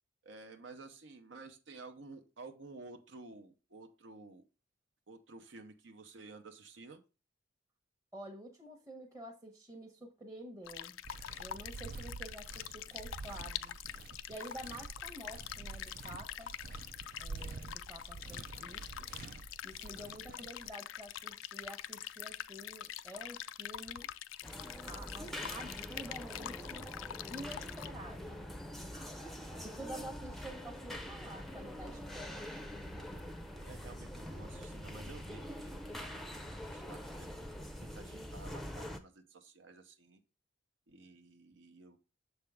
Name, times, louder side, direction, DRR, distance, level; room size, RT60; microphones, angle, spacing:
voice 1, 0.2-4.4 5.1-7.0 33.6-37.3 37.8-40.2 40.9-42.0, right 3 dB, 70° right, 6 dB, 0.8 m, -53 dB
voice 2, 8.1-11.0 11.4-13.8 14.3-16.5 17.2-19.1 19.6-24.1 24.9-26.9 27.3-29.2 29.6-32.5, right 1 dB, 15° right, 0 dB, 0.8 m, -49 dB
sound 1, 10.7-27.9, left 11 dB, 85° left, 0.3 m, -45 dB
Walk footsteps, 11.0-20.7, right 4 dB, 45° right, 0.3 m, -48 dB
sound 2, 24.4-39.0, equal, ahead, 0.5 m, -44 dB
6.9 x 4.4 x 3.5 m, 0.31 s
head